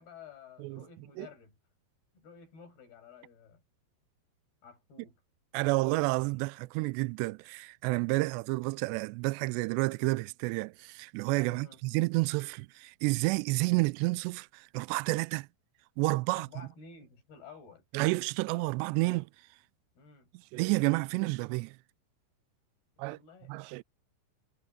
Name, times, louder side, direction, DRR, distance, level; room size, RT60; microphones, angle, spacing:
voice 1, 0.0-1.6 2.1-3.6 4.6-5.2 11.5-11.8 16.3-17.9 20.0-20.3 23.0-23.5, left 6 dB, 55° left, 9.6 m, -52 dB
voice 2, 5.5-15.5 16.0-16.5 17.9-19.3 20.5-21.8 23.0-23.2 23.5-23.8, right 24 dB, 85° right, 2.4 m, -30 dB
omnidirectional pair, 5.5 m